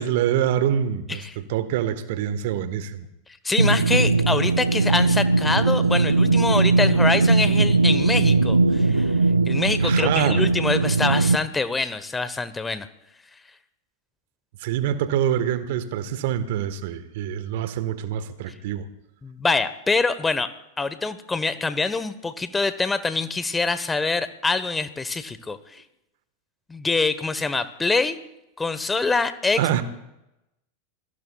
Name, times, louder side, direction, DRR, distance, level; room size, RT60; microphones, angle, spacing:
voice 1, 0.0-3.1 9.8-10.4 14.6-18.9 29.6-29.8, right 10 dB, 60° right, 12 dB, 1.3 m, -25 dB
voice 2, 3.4-9.2 9.5-12.9 19.2-25.8 26.7-28.2 28.6-29.8, left 3 dB, 15° left, 13 dB, 1.1 m, -25 dB
sound 1, 3.6-11.4, right 3 dB, 85° right, 0.6 m, -19 dB
28.0 x 21.5 x 2.4 m, 0.88 s
figure-of-eight pair, 90°, 0 cm